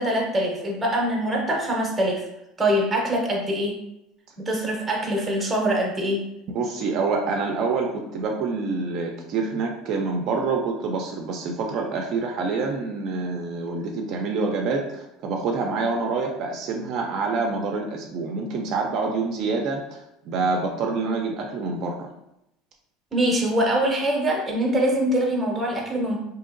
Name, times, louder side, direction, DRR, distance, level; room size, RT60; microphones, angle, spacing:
voice 1, 0.0-2.2 2.6-3.8 4.4-6.2 23.1-26.2, right 1 dB, 10° right, 0 dB, 0.7 m, -23 dB
voice 2, 6.5-22.1, right 4 dB, 45° right, 1 dB, 0.4 m, -27 dB
3.7 x 2.7 x 2.5 m, 0.85 s
cardioid pair, 155°, 0 cm